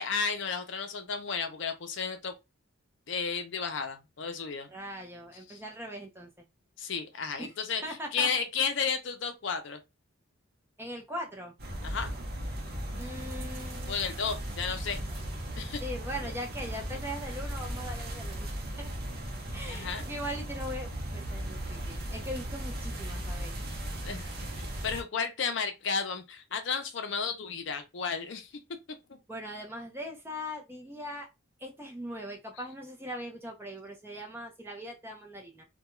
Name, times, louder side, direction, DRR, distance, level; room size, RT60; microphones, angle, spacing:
voice 1, 0.0-2.3 3.1-4.7 5.5-5.6 6.8-9.8 11.8-12.1 13.9-15.0 15.6-15.8 16.2-16.3 16.9-17.0 19.7-20.0 24.0-24.3 24.6-28.5 29.1-29.2, left 5 dB, 60° left, 0.5 m, -33 dB
voice 2, 4.7-6.3 7.4-7.5 7.8-8.3 10.8-11.5 13.0-14.0 15.8-18.5 18.8-18.9 19.5-23.5 29.3-31.3 31.6-35.7, equal, 10° right, 0.5 m, -40 dB
sound 1, 11.6-25.0, right 1 dB, 45° right, 0.7 m, -37 dB
2.3 x 2.2 x 3.0 m
head